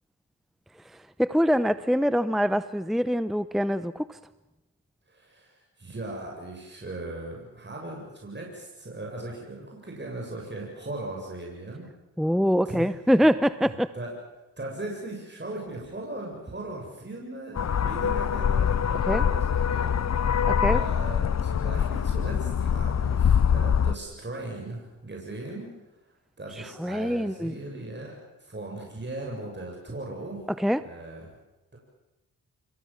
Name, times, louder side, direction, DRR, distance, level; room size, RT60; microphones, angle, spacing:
voice 1, 0.9-4.2 12.2-13.9 19.1-19.2 20.5-20.8 26.6-27.6 30.6-30.9, equal, ahead, 14 dB, 0.8 m, -24 dB
voice 2, 5.1-11.9 12.7-12.8 13.6-14.1 14.6-25.7 26.4-30.4 30.8-31.3, right 2 dB, 25° right, -1 dB, 7.5 m, -38 dB
sound 1, 17.6-23.9, left 8 dB, 40° left, 0.8 m, -24 dB
27.0 x 22.0 x 7.5 m, 0.98 s
supercardioid pair, 50°, 40 cm